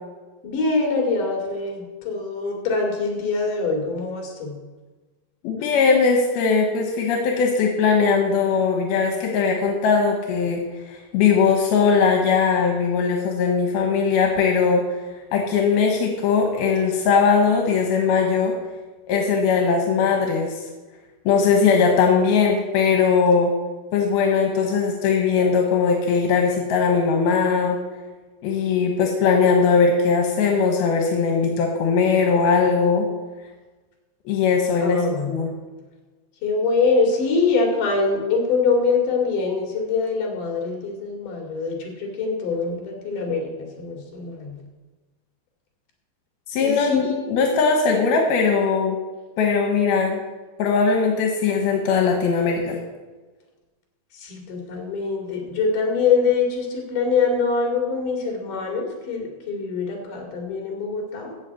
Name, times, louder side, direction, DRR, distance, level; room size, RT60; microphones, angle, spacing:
voice 1, 0.4-4.6 34.8-35.4 36.4-44.6 46.6-47.3 54.1-61.3, left 4 dB, 60° left, 1 dB, 4.0 m, -24 dB
voice 2, 5.4-14.8 15.3-18.6 19.1-20.6 21.3-23.5 23.9-27.8 28.4-33.1 34.3-35.0 35.3-35.5 46.5-49.0 49.4-50.2 50.6-52.8, left 5 dB, 85° left, 2 dB, 3.2 m, -20 dB
14.5 x 5.8 x 8.3 m, 1.3 s
omnidirectional pair, 4.3 m